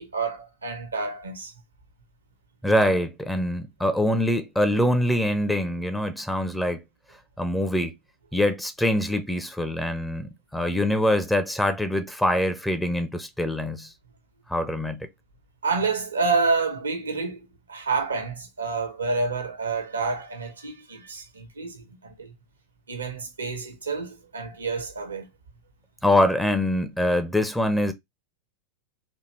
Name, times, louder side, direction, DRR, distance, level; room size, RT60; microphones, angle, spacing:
voice 1, 0.0-1.5 15.6-22.3 22.9-25.3, right 4 dB, 75° right, 1.1 m, -28 dB
voice 2, 2.6-6.8 7.4-7.9 8.3-13.9 14.5-15.1 26.0-27.9, left 1 dB, 5° left, 0.7 m, -24 dB
4.3 x 2.7 x 3.2 m
figure-of-eight pair, 90°, 0 cm